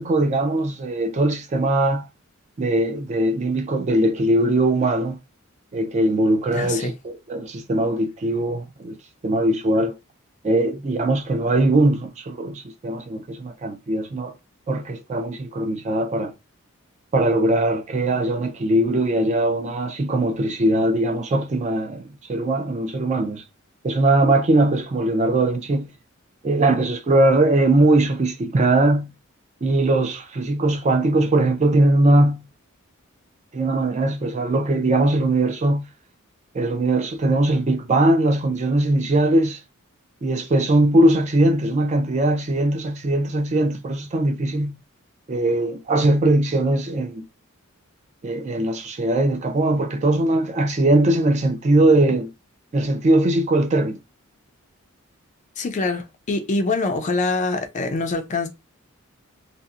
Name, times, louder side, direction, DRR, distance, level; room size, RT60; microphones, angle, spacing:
voice 1, 0.0-2.1 2.6-5.2 5.7-9.0 9.2-10.0 10.4-14.3 14.7-16.3 17.1-23.4 23.8-25.9 26.4-29.1 29.6-32.5 33.5-35.9 36.5-39.6 40.2-44.8 45.3-47.3 48.2-52.3 52.7-54.0, right 2 dB, 35° right, 0.4 m, -20 dB
voice 2, 6.5-6.9 55.6-58.5, left 3 dB, 35° left, 0.4 m, -24 dB
2.7 x 2.0 x 2.4 m
head